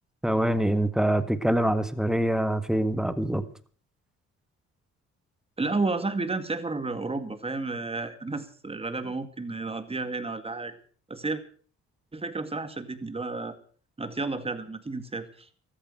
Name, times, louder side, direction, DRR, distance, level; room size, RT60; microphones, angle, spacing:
voice 1, 0.2-3.4, right 1 dB, ahead, 1.6 m, -25 dB
voice 2, 5.6-10.7 11.1-11.4 12.1-13.6 14.0-15.5, right 3 dB, 20° right, 2.0 m, -31 dB
14.5 x 13.5 x 6.4 m
cardioid pair, 90°, 30 cm